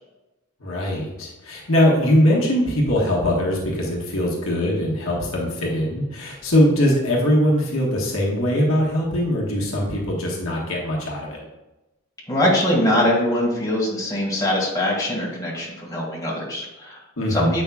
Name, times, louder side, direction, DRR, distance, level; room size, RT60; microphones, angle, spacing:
voice 1, 0.6-11.4 17.2-17.6, equal, 70° left, -3 dB, 1.4 m, -21 dB
voice 2, 12.3-17.0 17.3-17.6, left 1 dB, 15° left, -6 dB, 1.9 m, -22 dB
8.2 x 5.4 x 2.3 m, 1.0 s
head